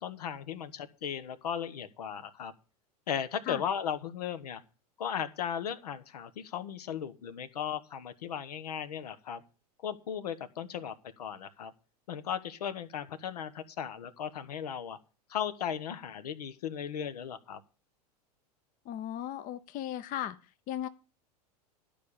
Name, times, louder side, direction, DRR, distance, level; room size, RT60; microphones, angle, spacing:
voice 1, 0.0-2.5 3.1-4.6 5.0-9.4 9.8-11.7 12.1-15.0 15.3-17.6, left 8 dB, 80° left, 12 dB, 1.1 m, -36 dB
voice 2, 18.9-20.4 20.7-20.9, left 11 dB, 45° left, 12 dB, 0.9 m, -36 dB
12.0 x 5.1 x 8.7 m, 0.35 s
hypercardioid pair, 90°, 20 cm